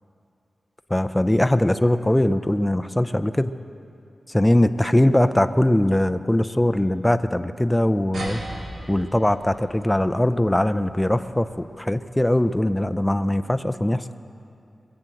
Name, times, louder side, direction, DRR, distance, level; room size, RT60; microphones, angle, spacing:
voice 1, 0.9-3.5 4.3-8.4 8.9-14.1, left 1 dB, 10° left, 11 dB, 0.4 m, -21 dB
sound 1, 8.1-13.0, right 1 dB, 90° right, 2.5 m, -39 dB
21.5 x 7.8 x 7.6 m, 2.6 s
wide cardioid pair, 90°, 0 cm